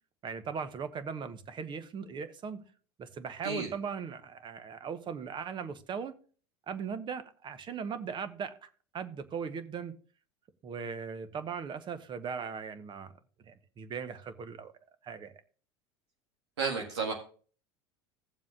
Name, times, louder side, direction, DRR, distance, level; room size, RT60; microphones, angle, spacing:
voice 1, 0.2-2.6 3.0-6.1 6.7-8.7 8.9-9.9 10.6-13.1 13.4-14.7 15.0-15.3, right 6 dB, 35° right, 1.0 m, -38 dB
voice 2, 16.6-17.1, right 4 dB, 80° right, 1.7 m, -32 dB
16.5 x 7.3 x 2.6 m
hypercardioid pair, 80°, 14 cm